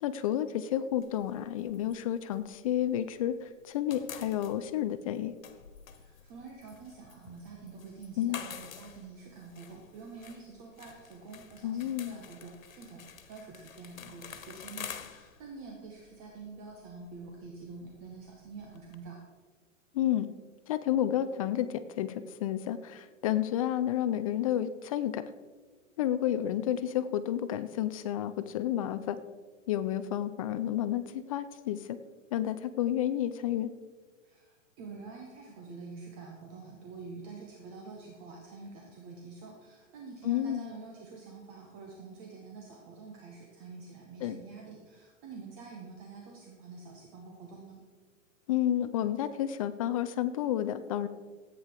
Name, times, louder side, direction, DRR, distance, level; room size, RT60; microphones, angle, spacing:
voice 1, 0.0-5.3 8.2-8.4 11.6-12.2 19.9-20.3 20.7-25.2 26.0-29.2 29.7-32.0 32.3-33.7 40.2-40.7 44.2-44.4 48.5-51.1, left 11 dB, 30° left, 12 dB, 0.4 m, -31 dB
sound 1, 1.0-3.3 3.5-19.0, left 8 dB, 90° left, 1.4 m, -49 dB
voice 2, 5.9-19.2 34.2-47.8, right 4 dB, 35° right, 0 dB, 1.9 m, -47 dB
14.0 x 9.2 x 4.8 m, 1.4 s
hypercardioid pair, 140°, 39 cm